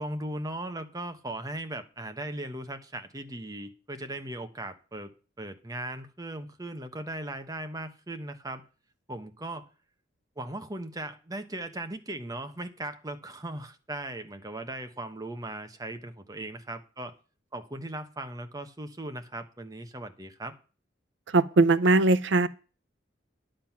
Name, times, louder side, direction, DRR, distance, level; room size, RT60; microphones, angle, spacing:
voice 1, 0.0-8.6 9.1-9.7 10.4-17.1 17.5-20.5, right 1 dB, 20° right, 1.1 m, -38 dB
voice 2, 21.3-22.5, right 3 dB, 65° right, 0.6 m, -20 dB
10.5 x 7.7 x 5.9 m
head